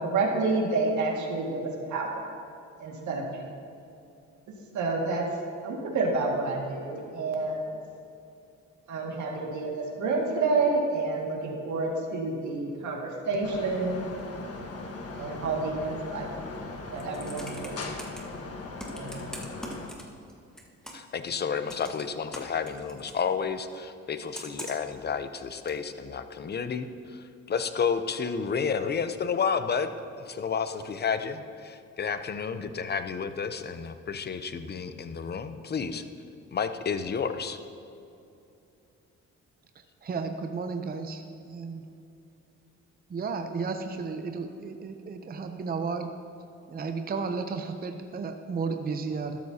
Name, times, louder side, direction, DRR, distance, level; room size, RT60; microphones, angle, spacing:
voice 1, 0.0-1.6 1.9-2.2 2.8-3.4 4.7-5.2 5.6-7.7 8.9-14.0 15.1-16.3 16.9-17.9 18.9-19.3, right 3 dB, 75° right, -1 dB, 2.1 m, -29 dB
sound 1, 13.4-19.9, left 3 dB, 50° left, 1.4 m, -39 dB
Computer keyboard, 16.9-18.2 18.8-20.3 20.6-21.2 21.7-23.2 24.3-24.9 25.7-25.8, equal, ahead, 1.6 m, -42 dB
voice 2, 20.9-29.9 30.3-36.0 36.5-37.6, left 6 dB, 35° left, 10 dB, 0.7 m, -31 dB
voice 3, 40.0-41.8 43.1-46.1 46.7-49.4, right 4 dB, 30° right, 6 dB, 0.7 m, -33 dB
12.5 x 12.5 x 2.9 m, 2.7 s
cardioid pair, 90°, 30 cm